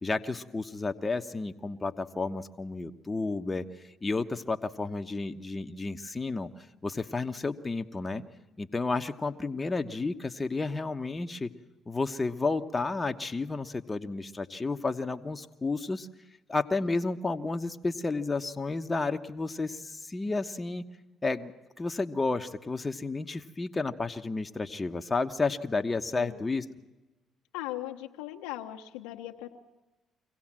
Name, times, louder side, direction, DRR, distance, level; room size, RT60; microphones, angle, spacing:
voice 1, 0.0-3.6 4.0-8.2 8.6-11.5 11.9-16.1 16.5-20.8 21.2-21.5 21.8-26.6, left 3 dB, 25° left, 6 dB, 1.1 m, -31 dB
voice 2, 26.1-26.4 27.5-29.5, left 14 dB, 85° left, 2 dB, 1.2 m, -39 dB
24.5 x 16.5 x 7.5 m, 1.1 s
hypercardioid pair, 60°, 0 cm